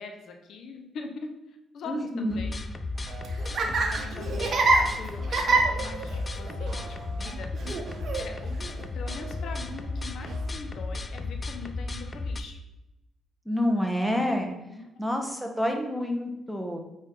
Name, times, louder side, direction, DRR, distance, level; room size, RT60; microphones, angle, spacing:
voice 1, 0.0-2.7 3.1-3.2 3.5-12.6 14.6-15.1, left 4 dB, 70° left, 4 dB, 0.9 m, -43 dB
voice 2, 1.9-2.4 13.4-14.5 15.0-16.8, equal, ahead, 3 dB, 1.2 m, -28 dB
sound 1, 2.3-12.4, left 3 dB, 30° left, 0.5 m, -34 dB
Laughter, 3.0-10.5, right 3 dB, 55° right, 1.1 m, -29 dB
8.8 x 3.6 x 3.8 m, 0.97 s
cardioid pair, 90°, 0 cm